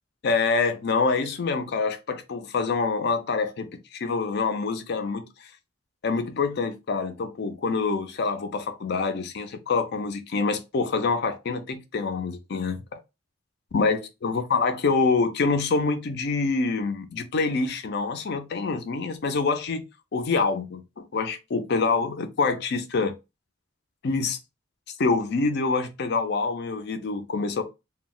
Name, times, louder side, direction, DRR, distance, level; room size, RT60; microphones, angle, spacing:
voice 1, 0.2-5.3 6.0-12.8 13.7-19.8 20.1-23.1 24.0-24.4 25.0-27.6, left 4 dB, 60° left, 0.5 m, -26 dB
2.2 x 2.1 x 3.7 m
head